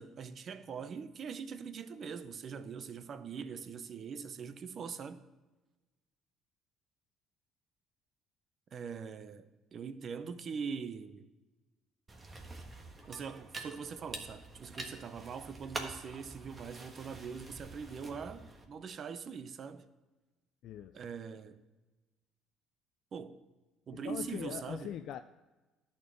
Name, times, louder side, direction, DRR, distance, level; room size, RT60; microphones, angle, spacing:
voice 1, 0.0-5.2 8.7-11.3 13.1-19.9 20.9-21.6 23.1-23.4 23.9-24.9, right 6 dB, 50° right, 0.7 m, -42 dB
sound 1, 12.1-18.6, right 2 dB, 25° right, 1.4 m, -46 dB
voice 2, 20.6-21.0 23.9-25.2, left 10 dB, 65° left, 0.3 m, -41 dB
11.0 x 4.4 x 7.5 m
supercardioid pair, 85°, 0 cm